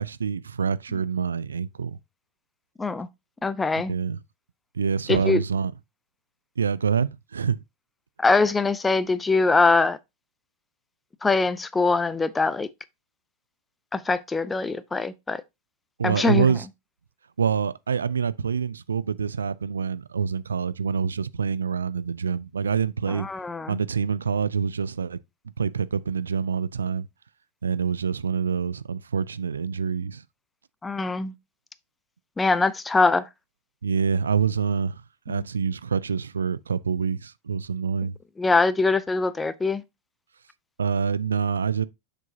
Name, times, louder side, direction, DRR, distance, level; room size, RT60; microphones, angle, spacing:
voice 1, 0.0-2.0 3.9-4.2 4.7-5.7 6.6-7.6 16.0-16.7 17.4-23.3 23.7-25.2 25.6-27.1 27.6-30.2 33.8-38.2 40.8-41.8, right 6 dB, 70° right, 0.3 m, -26 dB
voice 2, 3.4-3.9 5.1-5.4 8.2-10.0 11.2-12.7 13.9-15.4 16.0-16.5 23.1-23.8 30.8-31.3 32.4-33.2 35.3-35.4 38.4-39.8, left 3 dB, 10° left, 0.5 m, -23 dB
6.6 x 6.0 x 2.7 m
figure-of-eight pair, 90°, 0 cm